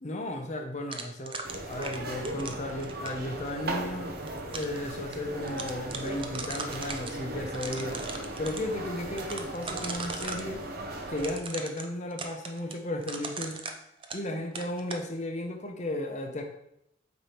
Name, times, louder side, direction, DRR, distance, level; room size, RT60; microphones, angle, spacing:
voice 1, 0.0-4.2 4.4-8.0 8.4-10.7 11.1-13.6 14.1-16.4, left 1 dB, 40° left, 3 dB, 0.9 m, -35 dB
sound 1, 0.9-3.3 4.0-4.8 5.1-5.2 5.5-7.1 7.5-8.6 9.2-10.5 11.2-14.3 14.6-15.0, right 4 dB, 30° right, 0.6 m, -39 dB
sound 2, 1.4-11.4, right 1 dB, 55° right, 0.9 m, -37 dB
8.2 x 3.3 x 4.5 m, 0.77 s
head